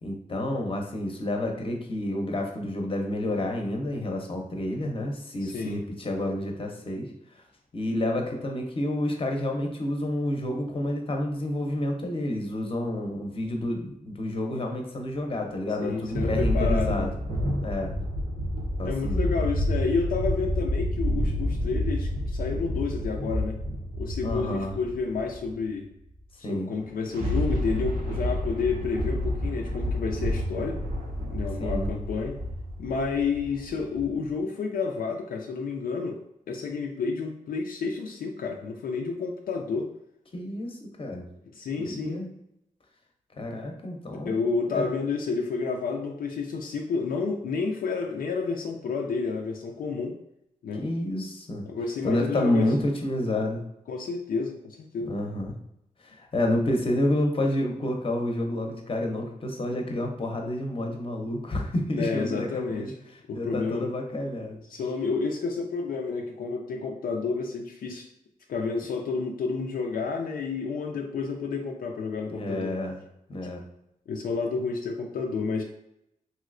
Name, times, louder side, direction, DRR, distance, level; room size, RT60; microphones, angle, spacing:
voice 1, 0.0-7.4 7.7-17.1 17.6-18.0 18.8-19.2 24.2-24.7 26.4-26.7 31.6-31.9 40.3-41.3 41.8-42.3 43.4-44.4 44.7-44.9 50.8-51.7 52.0-53.6 55.0-55.5 56.0-62.9 63.3-64.6 72.3-73.0 73.3-73.6, left 1 dB, 40° left, 2 dB, 0.7 m, -29 dB
voice 2, 5.4-5.8 15.8-17.1 18.8-23.6 24.0-25.9 26.5-30.8 31.3-32.4 32.8-36.2 36.5-39.9 41.5-42.2 44.1-50.2 50.6-50.8 51.7-52.7 53.9-55.1 61.9-62.9 63.3-63.9 64.7-68.1 68.5-72.7 74.1-75.6, left 4 dB, 80° left, 1 dB, 0.4 m, -30 dB
sound 1, 15.2-15.3 15.8-25.5 26.8-34.1, equal, 85° right, 0.7 m, -29 dB
3.1 x 2.7 x 2.5 m, 0.82 s
cardioid pair, 65°, 15 cm